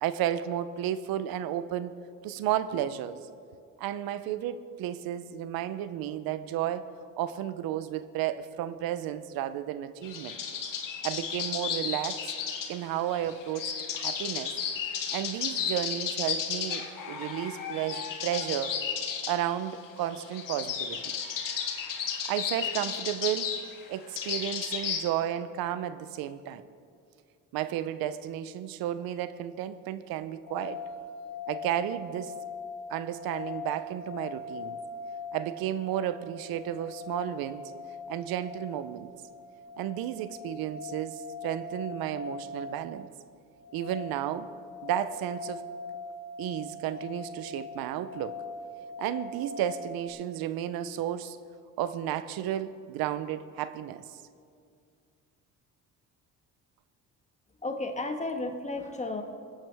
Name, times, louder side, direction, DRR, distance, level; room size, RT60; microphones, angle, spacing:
voice 1, 0.0-1.9 2.2-3.2 3.8-6.9 7.2-10.4 11.0-12.3 12.7-14.5 15.1-18.8 19.3-21.1 22.3-23.6 23.9-26.6 27.5-30.8 31.5-32.3 32.9-34.8 35.3-37.7 38.1-39.1 39.8-43.1 43.7-44.5 44.8-45.6 46.4-48.4 49.0-51.4 51.8-54.2, right 11 dB, 85° right, 14 dB, 0.6 m, -33 dB
sound 1, 10.0-25.1, left 7 dB, 65° left, 1.6 m, -33 dB
sound 2, 30.5-50.1, left 3 dB, 80° left, 1.1 m, -41 dB
voice 2, 57.6-59.2, left 2 dB, 20° left, 4 dB, 1.5 m, -33 dB
21.5 x 9.0 x 3.4 m, 2.3 s
cardioid pair, 95°, 35 cm